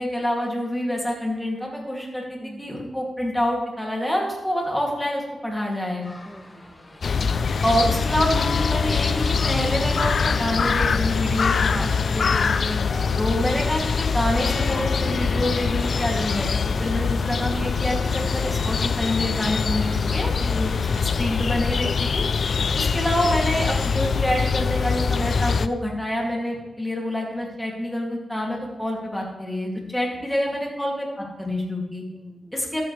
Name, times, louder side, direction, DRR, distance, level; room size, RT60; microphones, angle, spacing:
voice 1, 0.0-6.1 7.6-12.8 13.2-22.2 22.8-32.0 32.5-32.8, equal, 5° left, -1 dB, 2.6 m, -27 dB
sound 1, 6.0-20.8, left 1 dB, 25° left, 1.6 m, -44 dB
voice 2, 6.3-7.0 11.7-12.1 20.3-20.7 22.7-23.0 30.2-30.3 32.1-32.5, right 1 dB, 10° right, 5 dB, 0.6 m, -40 dB
sound 2, 7.0-25.7, left 5 dB, 65° left, 0.4 m, -23 dB
13.0 x 7.8 x 3.3 m, 1.1 s
cardioid pair, 75°, 0 cm